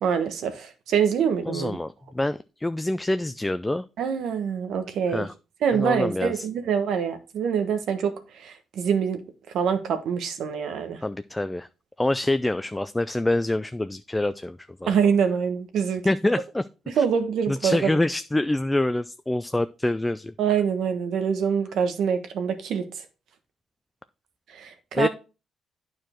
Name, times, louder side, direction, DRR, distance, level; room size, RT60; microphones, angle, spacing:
voice 1, 0.0-1.7 4.0-5.3 5.6-9.2 9.5-11.0 14.9-16.0 17.0-17.9 20.4-22.8 24.5-25.1, right 7 dB, 75° right, 1.3 m, -25 dB
voice 2, 1.5-3.8 5.1-5.3 5.7-6.5 11.0-11.7 12.0-14.9 16.0-16.6 16.9-17.0 17.5-20.3 24.9-25.1, left 1 dB, 10° left, 0.3 m, -26 dB
9.1 x 4.8 x 4.4 m
cardioid pair, 90°, 0 cm